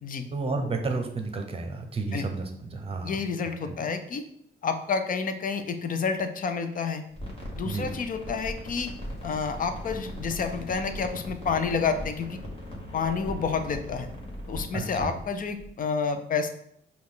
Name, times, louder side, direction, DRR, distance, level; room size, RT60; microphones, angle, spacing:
voice 1, 0.3-3.2 3.6-3.7 7.6-7.9 14.7-15.1, right 3 dB, 30° right, 5 dB, 0.8 m, -31 dB
voice 2, 3.0-4.2 4.6-7.0 7.6-8.9 9.2-12.4 12.9-14.1 14.5-16.5, left 5 dB, 45° left, 8 dB, 0.5 m, -29 dB
sound 1, 7.1-15.7, equal, 30° left, 1.4 m, -39 dB
5.1 x 2.4 x 3.8 m, 0.70 s
cardioid pair, 90°, 20 cm